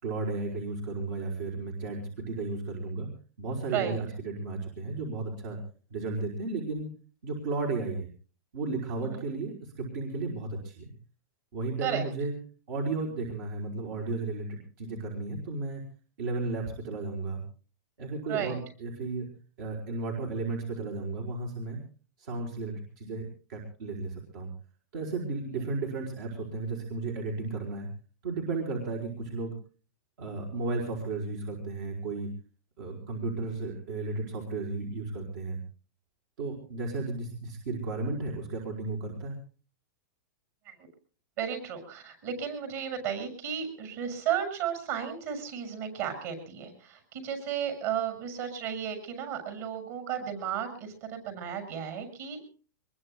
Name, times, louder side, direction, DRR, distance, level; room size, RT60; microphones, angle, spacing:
voice 1, 0.0-3.1 3.4-5.6 5.9-6.9 7.2-8.1 8.5-10.9 11.5-12.3 12.7-15.8 16.2-17.4 18.0-19.3 19.6-21.8 22.2-24.5 24.9-27.9 28.2-29.6 30.2-32.3 32.8-35.6 36.4-39.4, right 3 dB, 70° right, -1 dB, 5.0 m, -34 dB
voice 2, 41.4-52.5, right 8 dB, 50° right, 8 dB, 7.0 m, -34 dB
24.5 x 22.0 x 2.3 m, 0.36 s
supercardioid pair, 150°, 11 cm